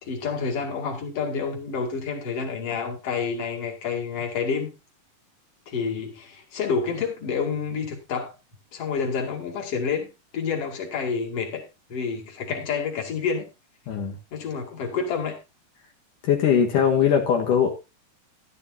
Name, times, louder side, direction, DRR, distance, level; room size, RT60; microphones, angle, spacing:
voice 1, 0.0-4.7 5.7-8.3 8.7-11.6 11.9-13.5 14.3-15.4, left 5 dB, 50° left, 3.2 m, -28 dB
voice 2, 13.9-14.2 16.2-17.7, left 8 dB, 75° left, 3.0 m, -20 dB
12.5 x 12.0 x 2.7 m
omnidirectional pair, 3.7 m